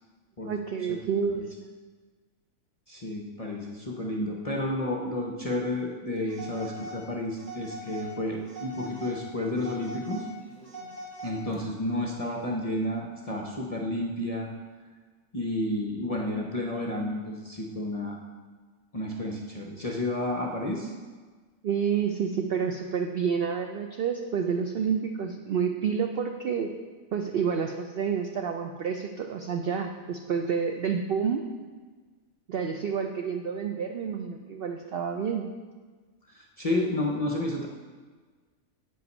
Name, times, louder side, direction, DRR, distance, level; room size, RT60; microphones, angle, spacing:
voice 1, 0.4-1.7 10.8-10.9 21.6-26.7 27.1-31.4 32.5-35.5, right 6 dB, 90° right, 5 dB, 0.5 m, -29 dB
voice 2, 2.9-10.3 11.2-14.5 15.3-18.2 18.9-20.9 36.3-37.7, left 1 dB, 45° left, 0 dB, 0.5 m, -31 dB
Telephone, 6.3-7.0 7.4-8.1 8.5-9.2 9.5-11.6, right 1 dB, 35° right, 1.9 m, -42 dB
8.0 x 5.5 x 5.3 m, 1.4 s
omnidirectional pair, 1.6 m